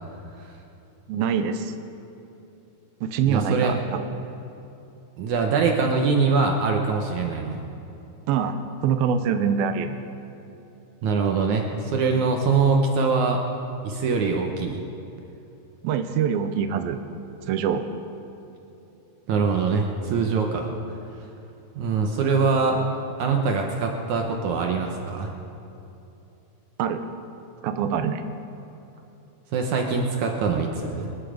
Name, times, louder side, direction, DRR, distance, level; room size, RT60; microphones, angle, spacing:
voice 1, 1.1-1.7 3.0-4.0 8.3-10.0 15.8-17.0 17.5-17.8 26.8-27.0 27.6-28.2, right 7 dB, 85° right, 8 dB, 2.6 m, -24 dB
voice 2, 3.2-3.7 5.2-7.6 11.0-13.4 13.8-14.8 19.3-20.7 21.8-22.8 23.2-25.3 29.5-31.1, right 4 dB, 65° right, 2 dB, 2.1 m, -23 dB
26.0 x 10.5 x 5.0 m, 2.9 s
omnidirectional pair, 4.3 m